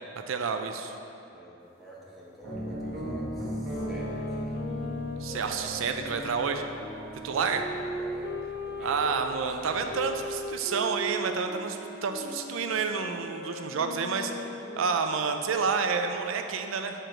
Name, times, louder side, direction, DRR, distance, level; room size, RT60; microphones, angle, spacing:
voice 1, 0.3-0.9 5.2-6.7 7.2-7.6 8.8-14.3 14.8-16.9, right 5 dB, 85° right, 6 dB, 0.4 m, -29 dB
voice 2, 1.3-4.6 5.2-5.9 7.2-7.6 7.9-10.0, right 1 dB, ahead, -8 dB, 1.3 m, -47 dB
sound 1, 2.4-10.3, equal, 55° right, 1.6 m, -38 dB
sound 2, 3.7-9.2 9.9-15.5, left 1 dB, 55° left, 0.6 m, -39 dB
7.7 x 4.6 x 5.0 m, 2.9 s
head